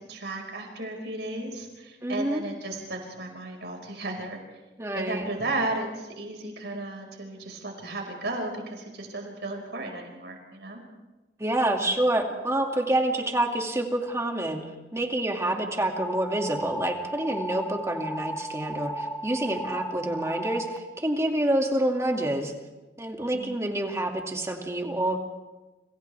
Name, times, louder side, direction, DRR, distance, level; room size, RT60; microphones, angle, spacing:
voice 1, 0.1-4.4 4.9-10.8 23.3-23.6, right 2 dB, 75° right, 2 dB, 5.1 m, -34 dB
voice 2, 2.0-2.4 4.8-5.2 11.4-14.6 14.9-22.5 23.0-25.2, right 1 dB, 15° right, 2 dB, 2.3 m, -27 dB
sound 1, 16.0-20.8, right 1 dB, 10° left, 0.9 m, -35 dB
29.5 x 27.0 x 3.5 m, 1.1 s
head